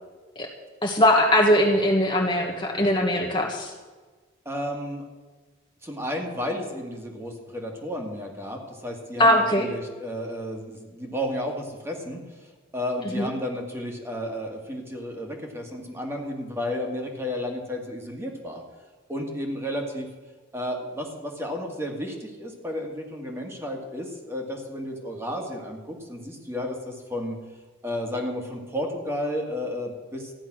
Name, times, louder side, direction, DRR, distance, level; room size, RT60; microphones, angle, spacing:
voice 1, 0.8-3.7 9.2-9.7 13.1-13.3, left 1 dB, 25° left, 0 dB, 1.4 m, -20 dB
voice 2, 4.5-5.0 5.8-12.2 12.7-18.6 19.1-20.1 20.5-27.4 27.8-30.3, left 1 dB, 15° right, 1 dB, 2.1 m, -32 dB
14.5 x 10.5 x 6.3 m, 1.3 s
head